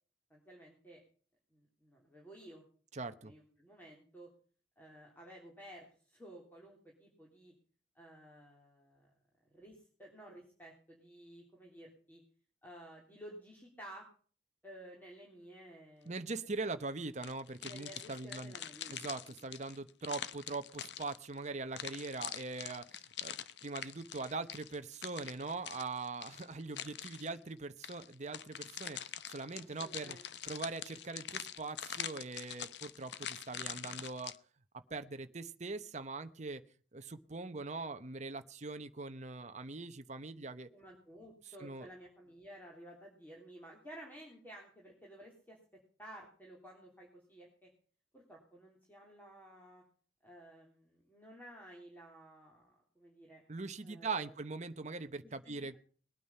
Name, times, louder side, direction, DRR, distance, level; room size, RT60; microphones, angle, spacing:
voice 1, 0.3-1.0 1.5-2.6 3.2-4.3 4.8-7.5 7.9-9.1 9.5-12.2 12.6-14.0 14.6-16.2 17.6-19.0 29.8-30.2 40.7-45.6 46.0-47.7 48.1-49.8 50.2-53.4 53.8-54.3 55.4-55.8, right 1 dB, 10° left, -2 dB, 3.3 m, -54 dB
voice 2, 2.9-3.3 16.1-18.6 18.9-23.3 23.6-29.0 29.3-30.2 30.4-34.3 34.9-36.6 36.9-40.7 41.6-41.9 53.5-55.8, right 3 dB, 40° right, 9 dB, 0.9 m, -42 dB
sound 1, 17.2-21.4 21.8-27.4 27.8-34.4, left 10 dB, 65° left, 0.8 m, -44 dB
20.5 x 9.2 x 5.5 m, 0.43 s
head